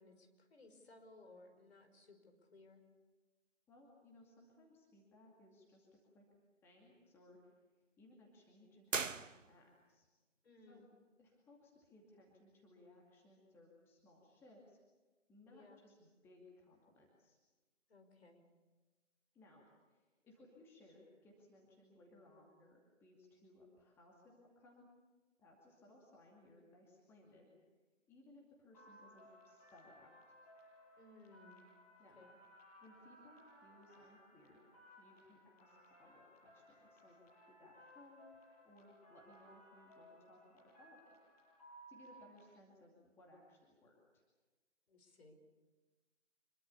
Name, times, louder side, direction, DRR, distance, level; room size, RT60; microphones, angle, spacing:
voice 1, 0.0-2.8 10.4-10.9 15.5-15.8 17.9-18.4 31.0-31.6 32.2-32.3 44.9-45.4, left 2 dB, 55° left, 5 dB, 5.4 m, -61 dB
voice 2, 3.7-6.3 6.6-7.6 8.0-10.1 10.7-10.8 11.2-14.8 15.3-17.4 19.3-24.9 25.4-27.5 28.1-30.1 32.0-32.3 32.8-34.6 35.0-37.2 37.5-41.2 41.9-44.2, left 1 dB, 5° left, -2 dB, 2.4 m, -63 dB
sound 1, 8.8-9.9, right 5 dB, 80° right, 1.2 m, -41 dB
sound 2, 28.7-42.4, equal, 30° left, 7.7 m, -62 dB
26.0 x 23.0 x 7.1 m, 1.2 s
figure-of-eight pair, 150°, 38 cm